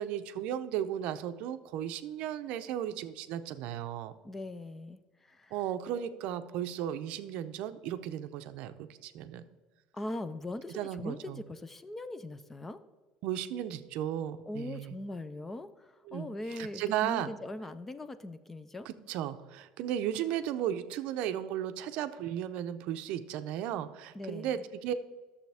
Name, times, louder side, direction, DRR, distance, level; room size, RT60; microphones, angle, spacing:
voice 1, 0.0-4.1 5.5-8.7 9.0-9.5 10.7-11.4 13.2-14.9 16.1-17.3 18.9-25.2, right 10 dB, 65° right, 11 dB, 0.6 m, -35 dB
voice 2, 4.2-5.6 9.9-12.8 14.5-18.9 24.1-24.6, left 2 dB, 10° left, 12 dB, 0.4 m, -41 dB
11.5 x 7.1 x 3.4 m, 1.3 s
cardioid pair, 165°, 2 cm